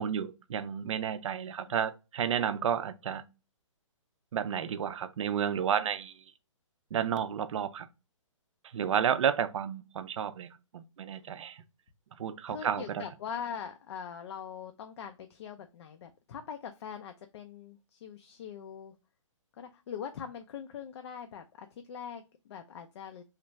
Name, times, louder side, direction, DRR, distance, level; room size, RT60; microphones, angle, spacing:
voice 1, 0.0-3.2 4.3-6.2 6.9-7.9 8.7-11.6 12.2-13.1, right 8 dB, 70° right, 0.5 m, -31 dB
voice 2, 12.5-18.9 19.6-23.2, left 7 dB, 55° left, 0.4 m, -42 dB
3.1 x 2.4 x 3.0 m
hypercardioid pair, 150°, 17 cm